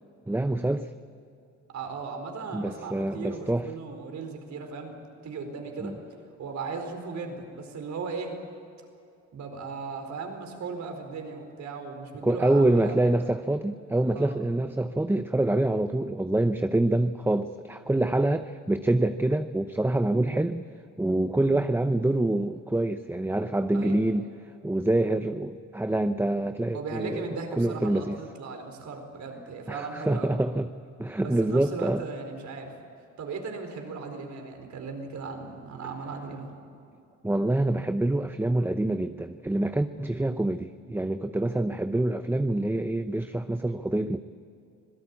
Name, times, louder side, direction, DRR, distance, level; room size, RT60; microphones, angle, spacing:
voice 1, 0.3-0.9 2.5-3.7 5.8-6.0 12.2-20.7 21.0-24.3 24.6-28.2 29.7-30.7 31.0-32.0 37.2-44.2, right 1 dB, 5° right, 9 dB, 0.7 m, -26 dB
voice 2, 1.7-5.0 5.2-5.9 6.4-8.4 9.3-13.1 14.1-14.3 23.7-24.0 26.7-30.3 31.2-32.8 33.2-36.5, right 4 dB, 65° right, 5 dB, 4.5 m, -37 dB
26.0 x 18.0 x 8.5 m, 2.6 s
cardioid pair, 90°, 30 cm